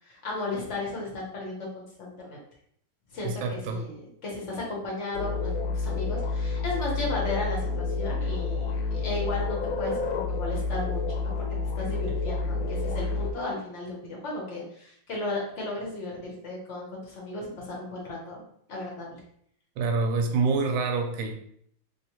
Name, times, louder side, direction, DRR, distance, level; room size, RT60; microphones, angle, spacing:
voice 1, 0.0-2.4 3.1-11.3 11.8-18.4 18.7-19.2, left 2 dB, 50° left, -3 dB, 0.9 m, -35 dB
voice 2, 3.2-3.8 19.8-21.3, right 4 dB, 85° right, 3 dB, 1.4 m, -26 dB
sound 1, 5.1-13.3, left 4 dB, 80° left, 1.4 m, -29 dB
3.1 x 3.1 x 2.9 m, 0.67 s
omnidirectional pair, 2.2 m